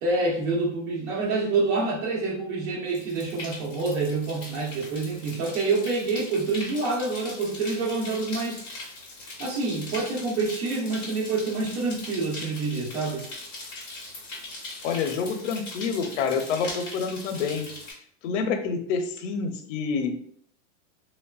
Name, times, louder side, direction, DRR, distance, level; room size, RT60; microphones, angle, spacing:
voice 1, 0.0-8.6 9.4-13.3, right 3 dB, 65° right, -3 dB, 0.9 m, -27 dB
sound 1, 2.9-17.9, left 2 dB, 15° left, 0.4 m, -40 dB
voice 2, 14.8-17.7 18.2-20.2, left 5 dB, 70° left, 7 dB, 0.5 m, -28 dB
3.1 x 2.1 x 2.3 m, 0.64 s
supercardioid pair, 170°, 37 cm